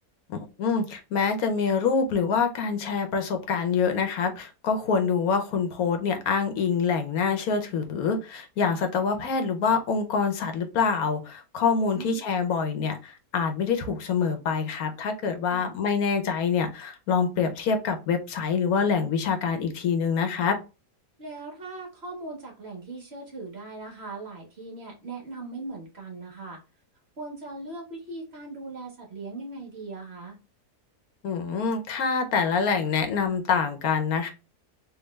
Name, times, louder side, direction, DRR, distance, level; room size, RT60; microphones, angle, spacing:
voice 1, 0.3-20.6 31.2-34.3, left 5 dB, 75° left, 1.2 m, -26 dB
voice 2, 11.7-12.2 15.5-15.7 21.2-26.6 27.2-30.4, right 3 dB, 45° right, 1.3 m, -39 dB
3.5 x 2.7 x 3.0 m
omnidirectional pair, 1.6 m